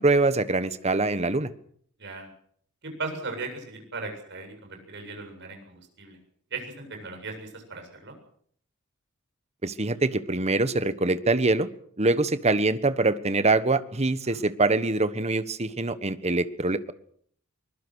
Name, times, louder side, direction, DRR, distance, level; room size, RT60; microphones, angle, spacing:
voice 1, 0.0-1.5 9.6-11.7 12.0-16.9, right 2 dB, 30° right, 13 dB, 1.3 m, -24 dB
voice 2, 3.0-6.2 6.5-8.1 14.3-14.4, right 3 dB, 55° right, 4 dB, 7.8 m, -37 dB
24.0 x 21.0 x 6.4 m, 0.62 s
head